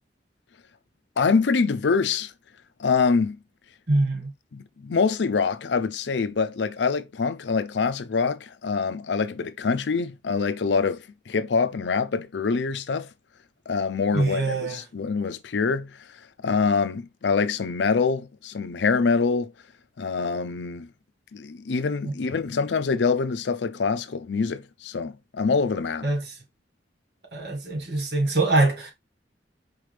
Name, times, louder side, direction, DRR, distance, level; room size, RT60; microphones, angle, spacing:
voice 1, 1.2-2.3 2.8-3.4 4.5-13.1 13.7-16.0 16.4-19.5 20.0-20.9 21.3-26.1, left 5 dB, 85° left, 0.5 m, -25 dB
voice 2, 3.9-4.3 14.1-14.8 22.0-22.1 26.0-26.2 27.3-28.9, right 2 dB, 65° right, 1.6 m, -23 dB
4.7 x 3.3 x 3.2 m
head